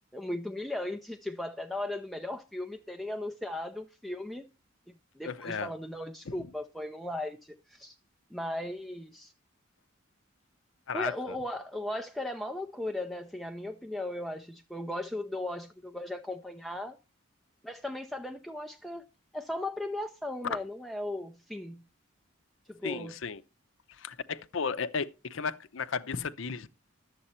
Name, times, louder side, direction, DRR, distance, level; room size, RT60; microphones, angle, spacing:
voice 1, 0.1-4.4 4.9-7.9 8.3-9.3 10.9-17.0 17.6-19.0 19.3-21.8 22.7-23.1, left 1 dB, ahead, 0.5 m, -37 dB
voice 2, 5.2-5.7 6.3-6.5 10.9-11.4 20.5-20.6 22.8-23.4 23.9-26.7, left 5 dB, 65° left, 0.6 m, -34 dB
11.0 x 7.6 x 4.3 m
head